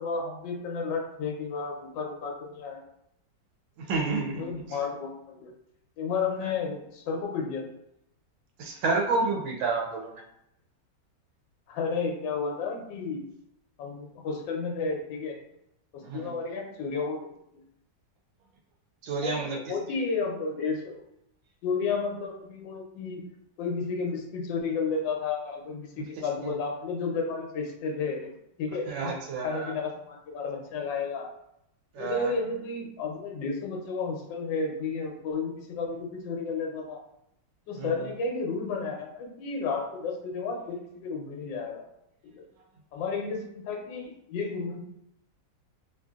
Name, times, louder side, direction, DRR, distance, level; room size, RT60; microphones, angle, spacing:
voice 1, 0.0-2.8 4.4-5.5 6.0-7.6 11.7-13.2 13.8-15.4 15.9-17.3 19.2-21.0 21.6-23.3 23.6-28.9 29.4-31.3 32.0-37.0 37.7-41.9 42.2-42.4 42.9-44.8, left 4 dB, 75° left, 1 dB, 1.3 m, -32 dB
voice 2, 3.8-4.8 8.6-10.2 16.0-16.3 19.0-20.0 26.0-26.6 28.9-29.7 31.9-32.3 37.7-38.1, right 3 dB, 85° right, 1 dB, 1.4 m, -31 dB
3.2 x 2.5 x 2.3 m, 0.79 s
omnidirectional pair, 2.1 m